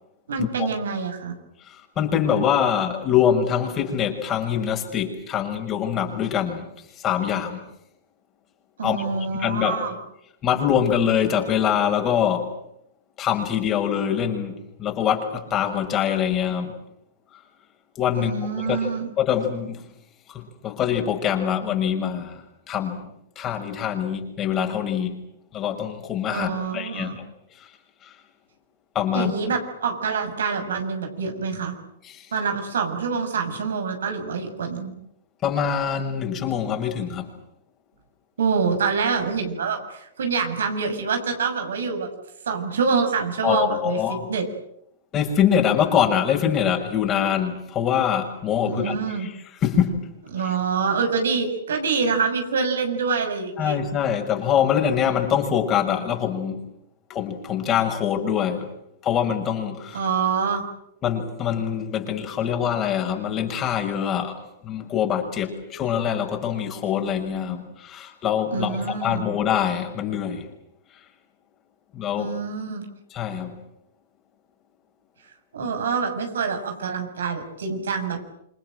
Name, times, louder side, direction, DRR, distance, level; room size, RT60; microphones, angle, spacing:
voice 1, 0.3-1.3 8.8-10.0 18.1-19.1 26.3-27.2 29.1-31.7 32.3-34.9 38.4-42.1 42.5-44.4 48.6-49.3 50.3-53.8 59.9-60.6 68.5-69.2 72.2-72.9 75.5-78.2, right 5 dB, 70° right, 5 dB, 6.6 m, -26 dB
voice 2, 1.7-6.7 7.0-7.6 8.8-9.8 10.4-12.5 13.2-16.7 18.0-18.9 19.2-19.8 20.3-22.4 22.7-23.1 23.4-25.2 25.5-27.2 28.0-28.1 28.9-29.3 32.0-32.3 35.4-37.3 43.4-44.3 45.1-49.3 49.6-50.1 53.6-56.6 57.1-58.7 59.0-60.0 61.0-70.4 71.9-72.3 73.1-73.5, left 8 dB, 30° left, 4 dB, 6.4 m, -24 dB
28.0 x 26.5 x 7.9 m, 0.77 s
figure-of-eight pair, 110°, 0 cm